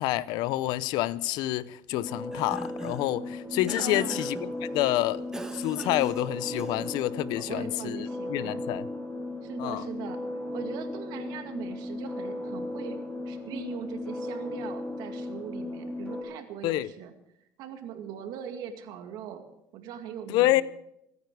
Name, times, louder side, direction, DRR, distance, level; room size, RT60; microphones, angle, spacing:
voice 1, 0.0-5.2 5.5-8.9 9.6-9.8 16.6-16.9 20.3-20.6, left 16 dB, 80° left, 0.6 m, -28 dB
sound 1, 1.9-16.2, left 1 dB, 10° left, 4.3 m, -36 dB
Cough, 2.1-3.1 3.7-4.5 5.3-7.0, right 2 dB, 10° right, 1.2 m, -41 dB
voice 2, 3.8-4.2 7.4-8.6 9.4-10.2 10.5-13.0 13.3-17.1 17.6-19.4 19.7-20.6, right 8 dB, 75° right, 2.2 m, -40 dB
24.5 x 9.6 x 4.7 m
cardioid pair, 125°, 7 cm